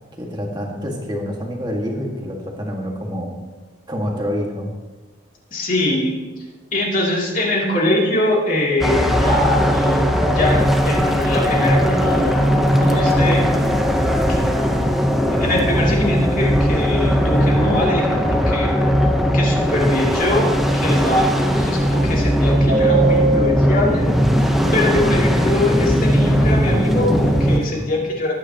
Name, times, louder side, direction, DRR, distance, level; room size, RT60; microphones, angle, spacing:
voice 1, 0.2-3.3 3.9-4.7 17.3-17.8 18.1-18.4 27.5-27.9, equal, 20° right, 0 dB, 1.8 m, -27 dB
voice 2, 5.5-6.2 6.7-12.5 12.8-13.4 14.3-14.4 15.4-18.7 19.3-24.1 24.7-28.3, left 1 dB, 40° left, -3 dB, 2.8 m, -22 dB
sound 1, 8.8-27.6, equal, ahead, 0.8 m, -18 dB
Subway metro underground, 22.7-24.9 25.1-25.2 25.5-25.7 26.0-26.4 26.7-27.7, right 4 dB, 40° right, 1.6 m, -22 dB
20.5 x 9.8 x 3.0 m, 1.2 s
head